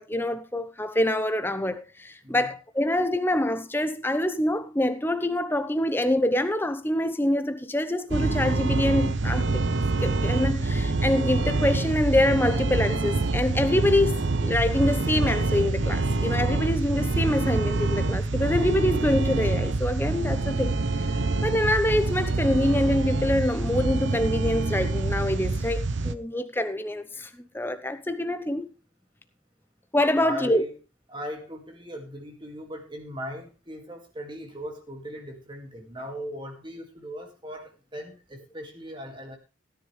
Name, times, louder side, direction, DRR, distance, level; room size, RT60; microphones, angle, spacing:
voice 1, 0.0-9.6 10.0-28.7 29.9-30.6, left 1 dB, 10° left, 0.9 m, -25 dB
sound 1, 8.1-26.2, right 3 dB, 60° right, 0.8 m, -26 dB
voice 2, 30.2-30.8 31.1-39.4, equal, 25° right, 2.2 m, -38 dB
17.0 x 10.5 x 3.3 m
head